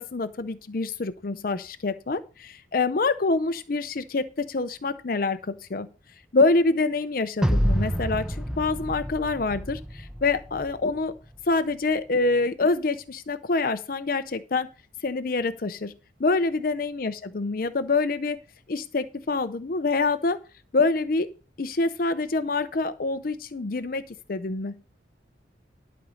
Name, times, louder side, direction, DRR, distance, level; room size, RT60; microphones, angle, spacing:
voice 1, 0.0-5.9 6.3-11.1 11.5-14.7 15.0-15.9 16.2-18.4 18.7-20.4 20.7-21.3 21.6-24.8, left 3 dB, 50° left, 11 dB, 0.6 m, -26 dB
sound 1, 7.4-10.7, equal, 5° right, 0.7 m, -27 dB
11.5 x 5.2 x 6.3 m, 0.34 s
head